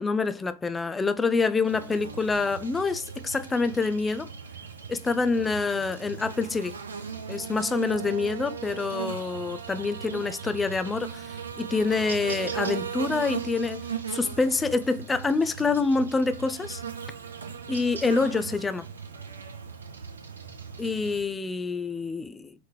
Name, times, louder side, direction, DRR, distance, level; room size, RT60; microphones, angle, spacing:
voice 1, 0.0-4.3 4.9-6.7 7.3-16.8 17.7-18.9 20.8-22.5, left 4 dB, 15° left, 0.3 m, -27 dB
Buzz, 1.6-21.2, right 7 dB, 70° right, 0.8 m, -38 dB
4.2 x 3.5 x 3.2 m
figure-of-eight pair, 90°, 0 cm